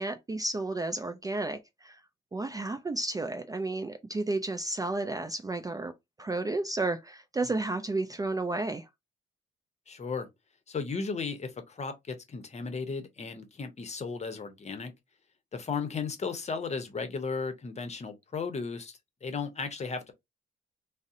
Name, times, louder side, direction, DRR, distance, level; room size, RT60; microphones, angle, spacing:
voice 1, 0.0-2.0 2.3-5.9 6.2-8.9, right 2 dB, 20° right, 0.4 m, -32 dB
voice 2, 9.9-10.3 10.7-14.9 15.5-20.1, left 5 dB, 35° left, 0.8 m, -35 dB
2.6 x 2.1 x 3.6 m
cardioid pair, 90°, 20 cm